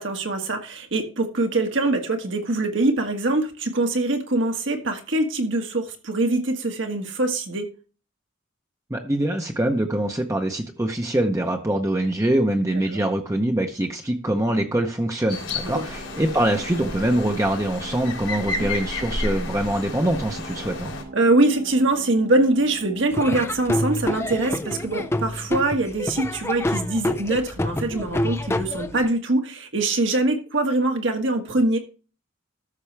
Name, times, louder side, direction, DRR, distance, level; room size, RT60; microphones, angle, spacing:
voice 1, 0.0-7.7 12.9-13.0 15.6-15.8 18.6-18.7 21.1-31.8, right 2 dB, 70° right, 1.6 m, -23 dB
voice 2, 8.9-20.9, right 1 dB, 15° right, 0.7 m, -24 dB
sound 1, 15.3-21.0, left 3 dB, 90° left, 3.3 m, -32 dB
sound 2, 15.3-26.7, right 3 dB, 45° right, 0.8 m, -42 dB
Laughter / Drum, 23.1-29.1, left 1 dB, 15° left, 0.3 m, -27 dB
13.5 x 6.1 x 3.3 m
head